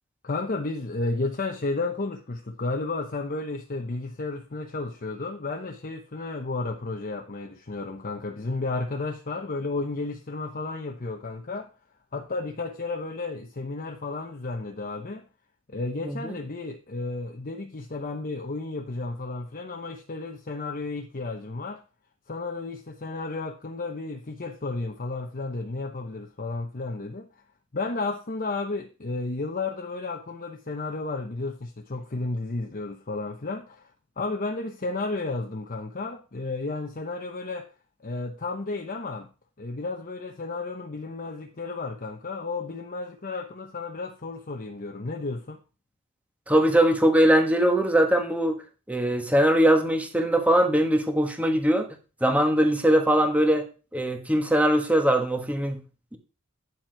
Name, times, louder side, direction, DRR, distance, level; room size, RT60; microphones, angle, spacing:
voice 1, 0.2-11.7 12.1-15.2 15.7-21.8 22.3-27.3 27.7-33.9 34.2-37.7 38.0-39.3 39.6-45.6, left 3 dB, 40° left, 0.9 m, -32 dB
voice 2, 16.0-16.4 46.5-48.6 48.9-51.9 52.2-53.7 53.9-55.8 56.1-56.2, right 1 dB, 5° right, 1.5 m, -21 dB
9.6 x 7.3 x 4.6 m
head